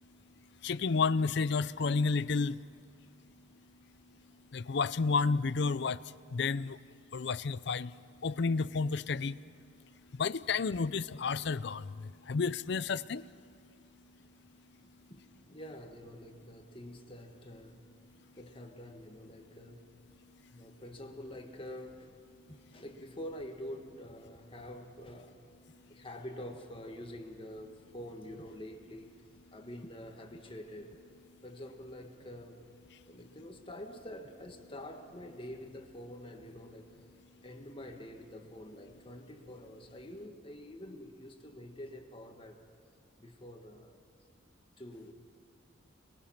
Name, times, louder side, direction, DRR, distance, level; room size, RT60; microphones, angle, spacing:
voice 1, 0.6-2.6 4.5-6.0 6.3-6.8 7.1-7.9 8.2-9.4 10.2-13.3, left 4 dB, 60° left, 0.5 m, -31 dB
voice 2, 15.1-17.8 18.4-19.9 20.5-22.1 22.5-25.4 25.9-29.1 29.5-31.0 31.4-32.6 33.1-36.9 37.4-42.6 43.2-44.0 44.8-45.1, left 1 dB, 25° left, 1.6 m, -47 dB
29.0 x 21.5 x 5.9 m
head